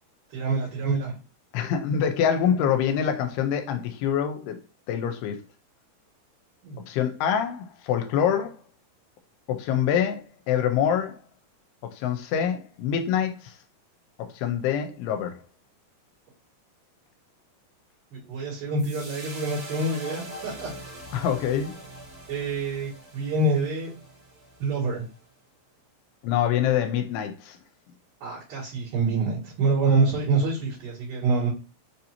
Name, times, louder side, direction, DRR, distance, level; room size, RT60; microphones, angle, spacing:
voice 1, 0.3-1.2 6.6-6.8 18.1-20.7 22.3-23.9 24.6-25.0 28.2-31.5, right 3 dB, 65° right, 3.3 m, -26 dB
voice 2, 1.5-4.6 4.9-5.4 6.9-8.6 9.5-11.2 11.9-13.6 14.3-15.4 21.1-21.8 26.2-27.6, left 8 dB, 85° left, 2.5 m, -25 dB
sound 1, 18.8-25.2, right 1 dB, 30° right, 1.5 m, -43 dB
6.5 x 2.7 x 2.8 m
omnidirectional pair, 4.5 m